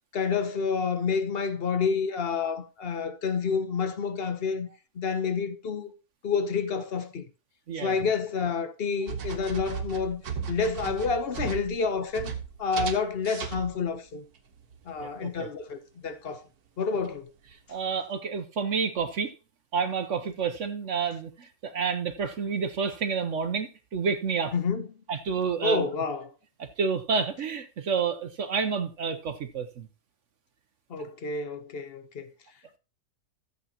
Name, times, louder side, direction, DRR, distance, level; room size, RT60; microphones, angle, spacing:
voice 1, 0.1-4.7 4.9-5.9 6.2-7.2 7.8-10.2 10.5-12.3 12.6-14.2 14.9-16.4 16.8-17.3 24.5-24.9 25.6-26.3 30.9-32.3, left 5 dB, 45° left, 1.0 m, -29 dB
voice 2, 7.7-8.0 15.0-15.5 17.7-19.3 19.7-24.5 25.1-25.8 26.8-29.9, right 5 dB, 60° right, 1.0 m, -29 dB
sound 1, 9.1-14.0 14.4-15.2 17.0-17.1 17.5-17.6, right 6 dB, 80° right, 1.7 m, -36 dB
13.5 x 8.0 x 2.9 m
omnidirectional pair, 1.6 m